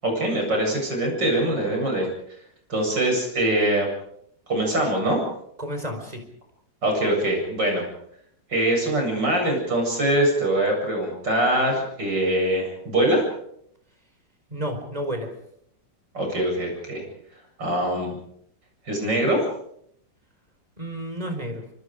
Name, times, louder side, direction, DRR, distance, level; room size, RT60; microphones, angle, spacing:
voice 1, 0.0-2.1 2.7-3.9 4.5-5.2 6.8-7.9 8.5-13.2 16.1-17.0 17.6-18.2 18.9-19.4, right 1 dB, 75° right, 1 dB, 8.8 m, -23 dB
voice 2, 5.6-6.2 14.5-15.3 20.8-21.6, equal, 20° right, 5 dB, 4.9 m, -31 dB
26.0 x 25.5 x 5.1 m, 0.71 s
omnidirectional pair, 1.9 m